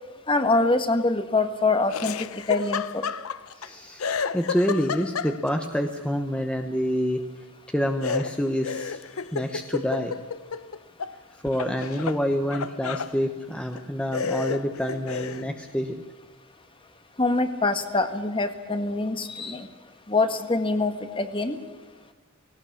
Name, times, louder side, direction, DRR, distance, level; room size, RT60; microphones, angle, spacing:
voice 1, 0.3-3.0 17.2-19.7 20.1-21.6, left 3 dB, 25° left, 9 dB, 1.6 m, -24 dB
Laughter, 1.9-3.7 4.0-5.7 8.0-11.1 11.5-13.1 13.7-13.8 14.1-15.5, left 6 dB, 80° left, 0.8 m, -31 dB
voice 2, 3.6-7.2 7.7-10.1 11.4-15.9, equal, 5° left, 4 dB, 1.0 m, -27 dB
18.5 x 18.0 x 8.5 m, 1.4 s
head